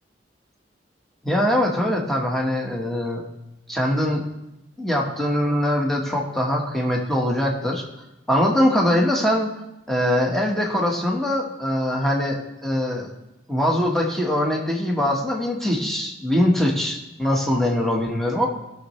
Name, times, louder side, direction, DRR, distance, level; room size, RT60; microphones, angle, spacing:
voice 1, 1.2-3.2 3.7-4.2 4.8-7.9 8.3-9.5 9.9-13.1 13.5-18.5, left 1 dB, ahead, -2 dB, 1.3 m, -22 dB
17.5 x 6.6 x 3.2 m, 0.93 s
head